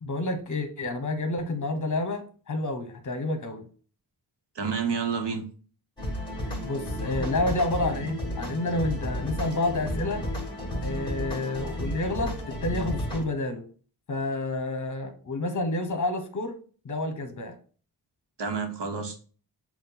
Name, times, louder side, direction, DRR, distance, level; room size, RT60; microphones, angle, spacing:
voice 1, 0.0-3.7 6.6-10.3 10.8-13.7 14.1-16.6 16.8-17.6, left 2 dB, 45° left, 7 dB, 1.0 m, -29 dB
voice 2, 4.5-5.4 18.4-19.2, right 5 dB, 80° right, 5 dB, 1.2 m, -29 dB
sound 1, 6.0-13.2, equal, 10° left, 1.9 m, -32 dB
7.4 x 2.5 x 5.6 m, 0.41 s
wide cardioid pair, 150°, 41 cm